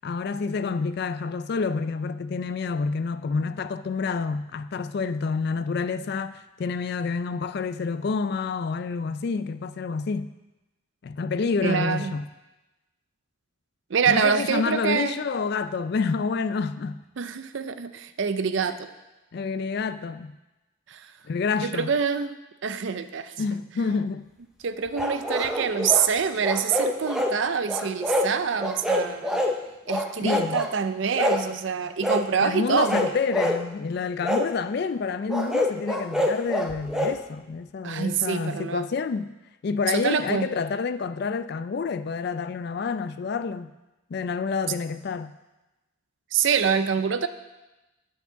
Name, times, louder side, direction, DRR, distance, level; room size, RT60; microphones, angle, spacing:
voice 1, 0.0-10.3 11.0-12.2 14.1-17.0 19.3-20.3 21.2-21.9 23.4-24.3 30.2-30.6 32.4-39.3 39.6-43.7 44.1-45.3, left 5 dB, 50° left, 0.3 m, -28 dB
voice 2, 11.6-12.1 13.9-15.2 17.2-18.9 20.9-21.1 21.6-22.3 22.6-23.3 24.6-29.4 29.9-33.2 37.8-38.9 39.8-40.5 46.3-47.3, right 6 dB, 65° right, 0.5 m, -26 dB
sound 1, 25.0-26.1 26.4-27.3 27.7-28.3 28.6-29.6 29.9-30.7 31.2-31.5 32.0-32.2 32.7-33.6 34.2-34.5 35.3-37.1, left 1 dB, 5° right, 0.5 m, -26 dB
8.2 x 4.7 x 7.0 m
head